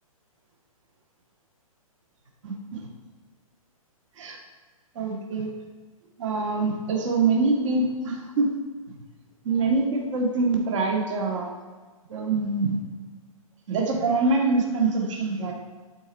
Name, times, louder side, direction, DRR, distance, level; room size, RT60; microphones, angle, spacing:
voice 1, 2.4-2.8 4.2-4.4 5.0-5.5 6.2-8.5 8.9-9.0 9.4-11.5 12.1-12.8 13.7-15.5, right 3 dB, 55° right, 0 dB, 1.8 m, -24 dB
12.0 x 4.2 x 4.5 m, 1.4 s
hypercardioid pair, 155°, 19 cm